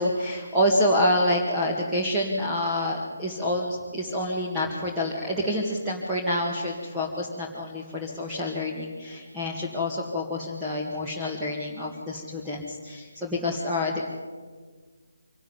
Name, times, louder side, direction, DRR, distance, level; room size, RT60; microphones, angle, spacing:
voice 1, 0.0-14.0, left 1 dB, 5° right, -5 dB, 2.1 m, -27 dB
25.0 x 12.5 x 9.7 m, 1.5 s
figure-of-eight pair, 150°, 0 cm